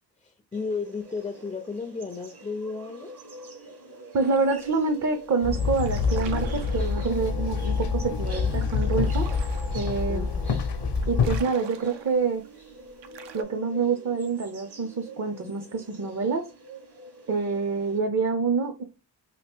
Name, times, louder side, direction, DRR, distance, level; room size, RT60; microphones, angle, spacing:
voice 1, 0.2-3.1 10.1-10.6, left 4 dB, 15° left, 0.3 m, -34 dB
sound 1, 0.5-18.0, right 2 dB, 60° right, 1.4 m, -46 dB
voice 2, 4.1-9.3 9.7-10.2 11.1-12.4 13.3-16.4 17.3-18.8, right 4 dB, 40° right, 0.6 m, -27 dB
sound 2, 4.2-4.7 5.1-5.3 5.6-13.4, right 7 dB, 80° right, 0.6 m, -44 dB
Walk footsteps / Chatter / Hiss, 5.4-11.4, left 5 dB, 70° left, 0.6 m, -26 dB
2.9 x 2.8 x 3.4 m
cardioid pair, 80°, 43 cm